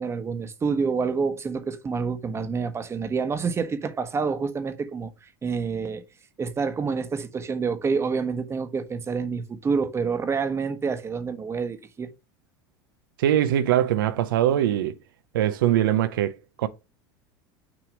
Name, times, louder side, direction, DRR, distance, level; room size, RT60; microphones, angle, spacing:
voice 1, 0.0-5.1 5.4-6.0 6.4-12.1, right 5 dB, 25° right, 1.1 m, -27 dB
voice 2, 13.2-14.9 15.3-16.7, right 11 dB, 85° right, 0.6 m, -22 dB
6.1 x 3.0 x 5.1 m
supercardioid pair, 100°, 11 cm